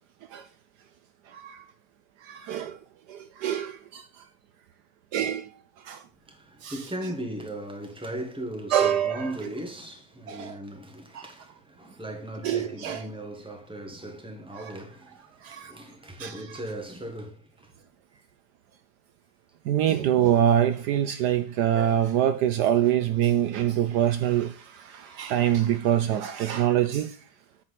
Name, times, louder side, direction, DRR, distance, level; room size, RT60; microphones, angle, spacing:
voice 1, 1.3-1.6 2.3-2.8 3.1-4.0 5.1-5.4 5.9-6.0 6.6-6.7 8.7-9.3 10.3-10.6 11.1-11.2 12.4-13.0 15.4-15.7 16.2-16.4 19.7-27.1, right 10 dB, 75° right, 1.2 m, -25 dB
voice 2, 6.2-17.7 18.1-18.2 25.0-25.3, right 1 dB, 5° right, 1.4 m, -38 dB
8.7 x 4.7 x 5.8 m
omnidirectional pair, 1.9 m